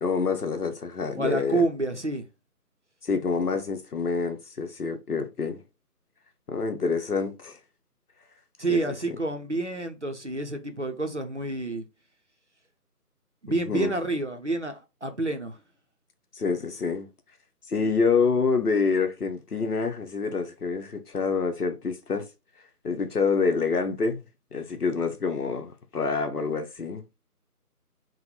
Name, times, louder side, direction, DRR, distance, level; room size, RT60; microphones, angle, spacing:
voice 1, 0.0-1.6 3.0-5.6 6.5-7.6 8.7-8.9 13.5-13.9 16.3-17.1 17.7-22.3 22.8-24.2 24.5-27.0, left 4 dB, 70° left, 0.9 m, -27 dB
voice 2, 1.2-2.3 8.6-11.8 13.4-15.6, right 2 dB, 50° right, 0.6 m, -28 dB
3.9 x 2.1 x 4.2 m
figure-of-eight pair, 180°, 47 cm